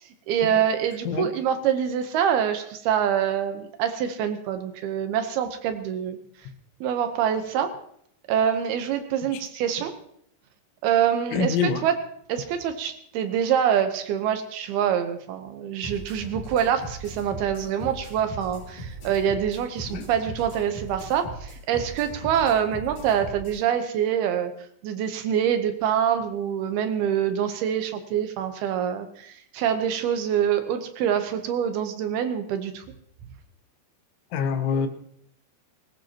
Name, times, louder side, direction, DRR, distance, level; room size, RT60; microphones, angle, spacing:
voice 1, 0.3-6.2 6.8-7.7 8.3-9.9 10.8-12.0 12.3-24.5 24.8-32.8, right 9 dB, 75° right, 7 dB, 2.4 m, -25 dB
voice 2, 11.3-11.8 19.9-20.1 34.3-34.9, left 6 dB, 80° left, 6 dB, 3.6 m, -25 dB
sound 1, 15.8-23.6, right 2 dB, 40° left, 8.5 m, -39 dB
19.5 x 18.5 x 2.9 m, 0.68 s
omnidirectional pair, 5.5 m